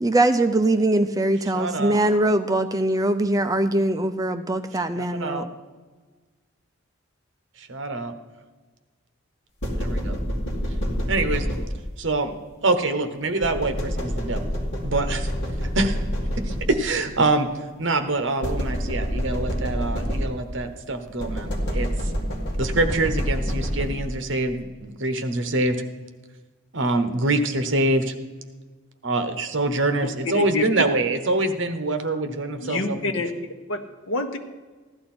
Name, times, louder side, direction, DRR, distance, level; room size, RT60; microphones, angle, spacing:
voice 1, 0.0-5.4, right 1 dB, 15° right, 8 dB, 0.5 m, -22 dB
voice 2, 1.5-2.0 5.0-5.5 7.6-8.1 9.7-10.1 11.1-11.5 12.0-12.3 12.6-14.5 14.8-15.3 15.6-16.0 16.4-17.5 17.8-21.9 22.6-25.8 26.7-28.1 29.0-33.0, right 2 dB, 60° right, 8 dB, 1.1 m, -25 dB
sound 1, 9.6-12.1 13.4-17.0 18.4-20.6 21.2-24.3, equal, 55° left, 2.2 m, -27 dB
voice 3, 30.3-30.7 32.6-34.4, left 3 dB, 70° left, 6 dB, 1.1 m, -28 dB
15.5 x 11.5 x 4.4 m, 1.3 s
head